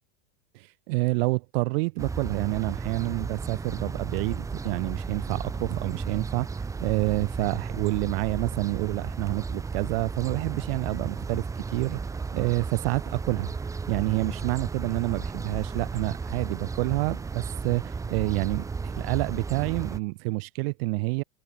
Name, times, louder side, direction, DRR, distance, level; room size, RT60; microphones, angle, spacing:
voice 1, 0.5-6.5 6.8-12.0 12.3-13.5 13.9-21.2, right 26 dB, 50° right, 0.5 m, -28 dB
sound 1, 2.0-20.0, right 4 dB, 10° right, 0.9 m, -34 dB
supercardioid pair, 165°, 39 cm